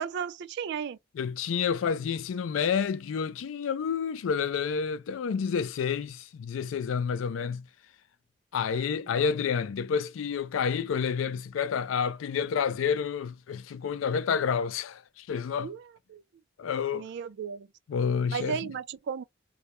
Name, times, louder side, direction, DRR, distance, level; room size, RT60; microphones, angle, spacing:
voice 1, 0.0-1.0 9.1-9.3 15.6-15.8 16.1-16.2 16.9-17.7 18.3-19.2, right 7 dB, 60° right, 0.3 m, -34 dB
voice 2, 1.1-7.7 8.5-15.7 16.6-17.1 17.9-18.6, left 6 dB, 85° left, 0.3 m, -29 dB
2.2 x 2.1 x 2.9 m
head